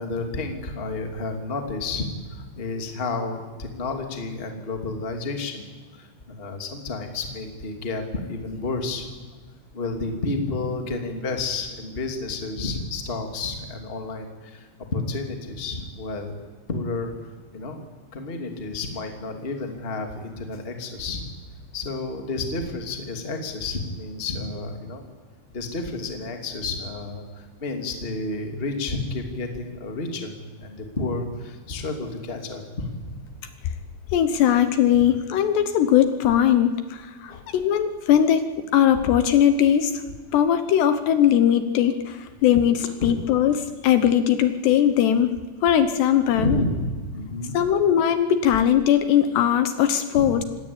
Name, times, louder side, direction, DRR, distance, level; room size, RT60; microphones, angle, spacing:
voice 1, 0.0-5.6 5.9-9.1 9.7-16.3 16.7-17.8 18.1-21.2 21.7-25.0 25.5-33.2 34.9-35.1 37.3-37.4 43.0-43.1 46.3-47.6 50.1-50.4, left 3 dB, 20° left, 4 dB, 1.9 m, -31 dB
voice 2, 34.1-40.0 40.3-45.3 45.6-46.6 47.5-50.4, left 10 dB, 70° left, 10 dB, 3.0 m, -20 dB
27.0 x 20.5 x 8.7 m, 1.4 s
omnidirectional pair, 5.4 m